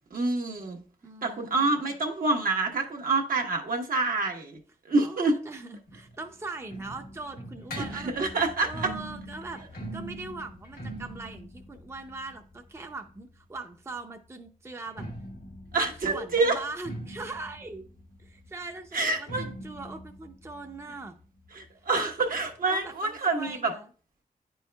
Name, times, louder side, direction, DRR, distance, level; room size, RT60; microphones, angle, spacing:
voice 1, 0.1-0.8 1.2-4.6 4.8-5.3 7.7-8.9 15.7-16.6 18.9-19.5 21.5-23.7, right 3 dB, 70° right, 2 dB, 1.1 m, -27 dB
voice 2, 1.0-1.9 5.0-8.1 8.6-9.6 9.9-15.1 15.7-17.8 18.2-21.1 22.7-23.9, right 3 dB, 15° right, 5 dB, 0.5 m, -41 dB
sound 1, 5.9-13.6 14.7-22.1 22.3-22.4 22.7-22.8 23.5-23.6, right 1 dB, 85° left, 1.1 m, -42 dB
9.4 x 4.6 x 2.2 m, 0.40 s
wide cardioid pair, 95°, 15 cm